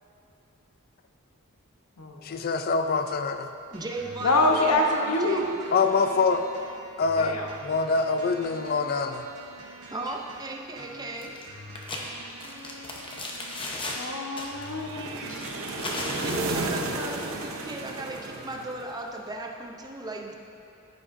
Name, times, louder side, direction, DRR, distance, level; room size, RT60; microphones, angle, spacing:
voice 1, 2.2-3.5 5.7-6.4 7.0-7.4 7.6-9.3 13.8-14.0, left 4 dB, 45° left, 7 dB, 0.4 m, -25 dB
voice 2, 3.7-5.9 9.9-11.4 16.2-20.3, right 2 dB, 20° right, 2 dB, 0.6 m, -36 dB
sound 1, 3.7-18.7, right 1 dB, 80° right, 1.5 m, -46 dB
voice 3, 4.2-5.4 7.2-7.5 13.9-15.4, left 2 dB, 85° left, 1 dB, 1.0 m, -25 dB
sound 2, 11.2-11.5 11.7-14.1 14.4-14.7 15.3-16.4, left 2 dB, 25° left, 0.9 m, -35 dB
sound 3, 14.8-19.0, right 2 dB, 60° right, 0.7 m, -33 dB
15.0 x 6.2 x 2.6 m, 2.7 s
head